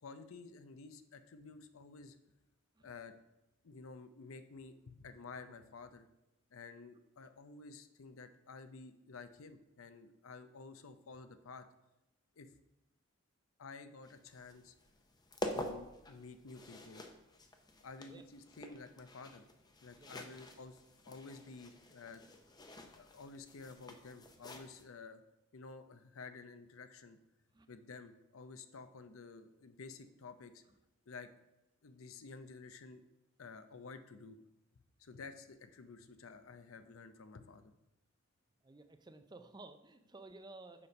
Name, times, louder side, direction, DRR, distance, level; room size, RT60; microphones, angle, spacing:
voice 1, 0.0-2.2 2.8-3.1 3.6-6.1 6.5-11.7 12.4-12.5 13.6-14.7 15.5-17.0 17.8-19.4 19.8-20.8 21.0-22.2 23.0-25.2 25.5-27.2 27.7-30.6 31.1-31.3 31.8-33.0 33.4-34.4 35.0-37.7, left 4 dB, 85° left, 10 dB, 0.6 m, -52 dB
sound 1, 14.0-24.8, left 1 dB, 20° left, 0.6 m, -48 dB
voice 2, 20.0-20.4 27.5-27.7 30.7-30.8 38.6-40.9, right 2 dB, 20° right, 9 dB, 0.4 m, -54 dB
6.9 x 5.0 x 5.3 m, 0.94 s
head